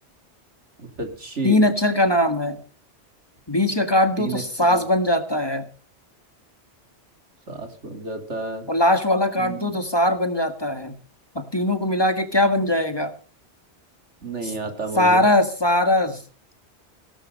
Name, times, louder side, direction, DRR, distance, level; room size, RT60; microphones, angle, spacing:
voice 1, 0.8-1.6 4.2-4.4 4.7-4.8 7.5-8.6 9.4-9.7 14.2-15.2, right 3 dB, 90° right, 6 dB, 3.3 m, -31 dB
voice 2, 1.4-2.6 3.5-5.6 8.7-10.9 11.4-13.1 14.4-14.5 15.0-16.2, left 1 dB, 20° left, 8 dB, 1.8 m, -20 dB
18.5 x 12.0 x 5.3 m, 0.39 s
omnidirectional pair, 1.2 m